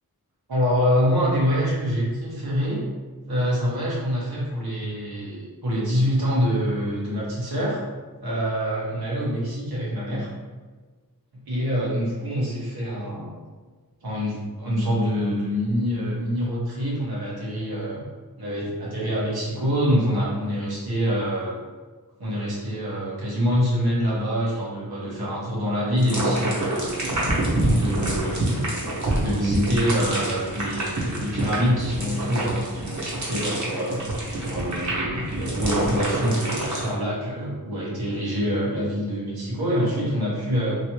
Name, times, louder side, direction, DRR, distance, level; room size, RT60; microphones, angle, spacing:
voice 1, 0.5-2.8 3.3-7.8 8.2-10.3 11.5-13.3 14.0-18.0 18.4-21.5 22.2-27.3 27.7-28.8 29.2-34.0 34.4-40.8, equal, 85° right, -6 dB, 1.1 m, -25 dB
sound 1, 26.0-36.9, right 1 dB, 50° right, 1.0 m, -27 dB
3.1 x 2.7 x 2.9 m, 1.4 s
wide cardioid pair, 60°, 37 cm